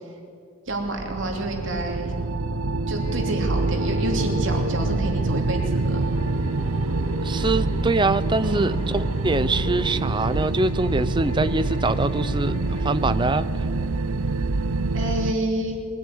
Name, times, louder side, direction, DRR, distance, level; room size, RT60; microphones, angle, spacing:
voice 1, 0.7-2.1 2.9-6.1 8.4-8.8 14.9-15.8, right 1 dB, 60° right, 2 dB, 3.0 m, -29 dB
sound 1, 0.7-15.3, right 3 dB, 90° right, 0.8 m, -26 dB
sound 2, 3.0-12.9, left 1 dB, 70° left, 6.3 m, -39 dB
voice 2, 7.2-12.6 12.8-13.5, right 2 dB, 20° right, 13 dB, 0.6 m, -24 dB
23.0 x 16.0 x 9.5 m, 2.3 s
head